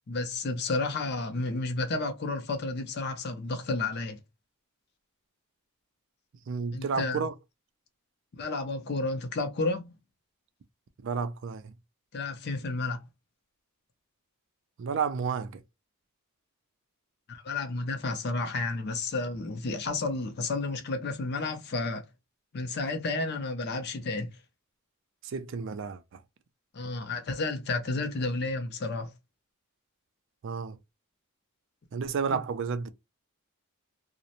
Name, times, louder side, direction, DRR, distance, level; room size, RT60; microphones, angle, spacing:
voice 1, 0.1-4.2 6.7-7.2 8.3-9.9 12.1-13.0 17.3-22.0 22.5-24.3 26.7-29.1 32.3-32.4, left 3 dB, 50° left, 0.5 m, -31 dB
voice 2, 6.5-7.3 11.0-11.7 14.8-15.6 25.2-26.2 30.4-30.8 31.9-32.9, right 5 dB, 55° right, 0.3 m, -31 dB
2.5 x 2.0 x 2.8 m
head